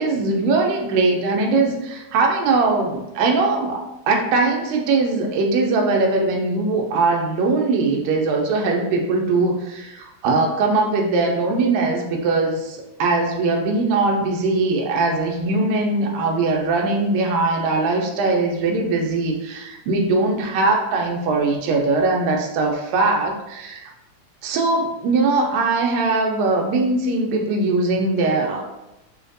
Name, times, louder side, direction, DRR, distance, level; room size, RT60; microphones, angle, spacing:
voice 1, 0.0-23.9 24.4-28.7, right 3 dB, 75° right, 1 dB, 1.8 m, -21 dB
5.8 x 2.4 x 2.6 m, 0.94 s
omnidirectional pair, 3.6 m